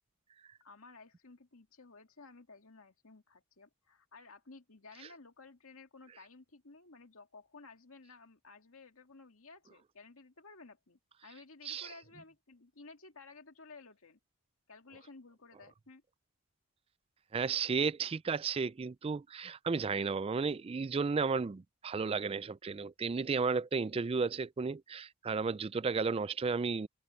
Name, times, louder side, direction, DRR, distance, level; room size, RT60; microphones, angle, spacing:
voice 1, 0.6-14.2 14.7-16.0, left 3 dB, 70° left, 2.2 m, -55 dB
voice 2, 17.3-26.9, right 5 dB, 25° right, 0.3 m, -33 dB
head